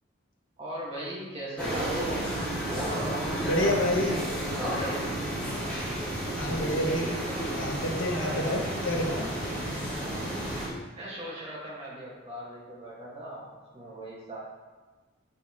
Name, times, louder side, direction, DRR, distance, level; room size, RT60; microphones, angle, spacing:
voice 1, 0.6-2.3 2.7-3.7 4.1-5.1 10.9-14.4, right 1 dB, 30° right, -6 dB, 1.8 m, -38 dB
sound 1, 1.6-10.7, right 1 dB, 5° left, 1.9 m, -31 dB
voice 2, 3.4-4.2 6.3-7.1 7.4-9.3, left 1 dB, 85° left, 0 dB, 1.3 m, -28 dB
7.9 x 5.4 x 3.1 m, 1.3 s
head